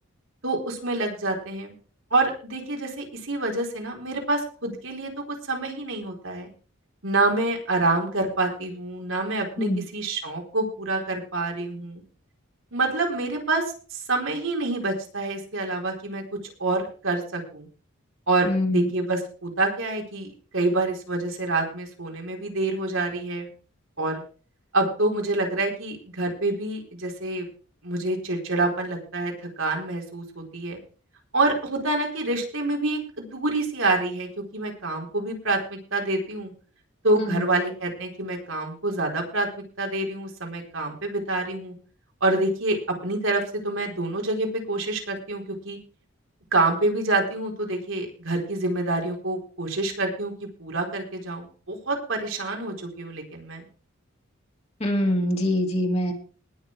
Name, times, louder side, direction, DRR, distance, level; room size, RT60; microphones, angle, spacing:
voice 1, 0.4-1.7 2.1-6.5 7.0-12.0 12.7-13.6 13.9-16.2 16.6-17.7 18.3-23.5 24.0-24.2 24.7-27.5 27.8-30.8 31.3-36.5 37.0-39.5 39.8-41.7 42.2-42.8 43.0-45.8 46.5-53.7, right 2 dB, 65° right, 1 dB, 4.3 m, -27 dB
voice 2, 18.4-18.8 37.2-37.4 54.8-56.1, left 1 dB, 30° left, 1 dB, 2.7 m, -24 dB
20.0 x 6.8 x 4.8 m, 0.39 s
head